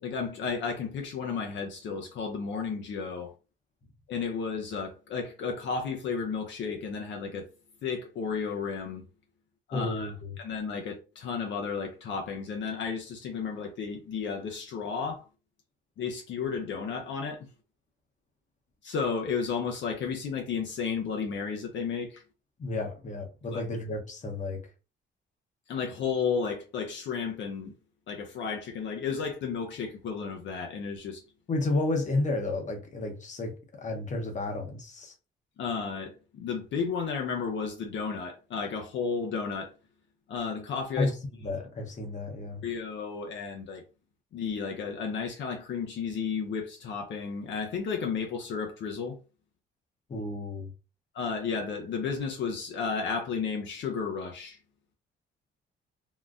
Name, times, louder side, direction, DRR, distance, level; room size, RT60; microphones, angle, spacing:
voice 1, 0.0-3.3 4.1-7.5 7.8-9.0 9.7-10.1 10.4-15.2 16.0-17.5 18.8-22.2 23.5-23.6 25.7-27.7 28.1-31.2 35.6-39.7 40.3-41.1 42.6-43.8 44.3-49.2 51.1-54.6, left 5 dB, 65° left, 0.6 m, -33 dB
voice 2, 9.7-10.4 22.6-24.6 31.5-35.1 41.0-42.6 50.1-50.7, left 2 dB, 40° left, 0.9 m, -32 dB
3.8 x 2.1 x 2.4 m
cardioid pair, 90°, 20 cm